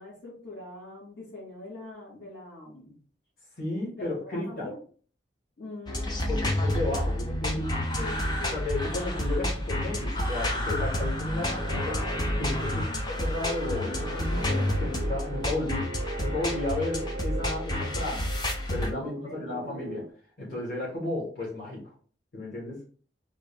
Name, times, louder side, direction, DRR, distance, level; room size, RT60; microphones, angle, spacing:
voice 1, 0.0-3.0 3.8-4.8 5.6-6.5 7.9-8.6 12.7-13.0 19.0-19.5, left 2 dB, 75° left, -4 dB, 1.8 m, -43 dB
voice 2, 3.6-4.7 6.3-7.7 8.5-12.0 12.4-12.9 13.2-15.9 16.2-18.3 18.7-20.0 20.4-21.9 22.3-22.8, left 2 dB, 55° left, -6 dB, 1.6 m, -33 dB
sound 1, 5.9-18.9, left 1 dB, 25° left, 0.5 m, -29 dB
sound 2, 11.6-20.1, right 3 dB, 80° right, 0.4 m, -40 dB
3.7 x 2.5 x 3.4 m, 0.43 s
head